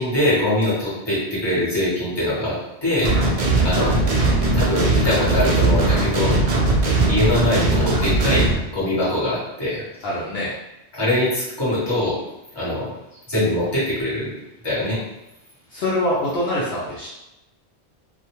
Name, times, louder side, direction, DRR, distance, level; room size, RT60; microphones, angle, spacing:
voice 1, 0.0-3.1 3.6-4.0 4.5-6.3 7.1-8.5 8.7-9.8 10.9-12.2 12.5-12.9 13.3-14.4 14.6-15.0, left 1 dB, 25° left, -9 dB, 1.1 m, -22 dB
sound 1, 3.0-8.6, right 2 dB, 50° right, 0.4 m, -19 dB
voice 2, 10.0-10.5 15.7-17.1, left 1 dB, 65° left, -8 dB, 0.8 m, -24 dB
2.3 x 2.2 x 2.9 m, 0.92 s
omnidirectional pair, 1.1 m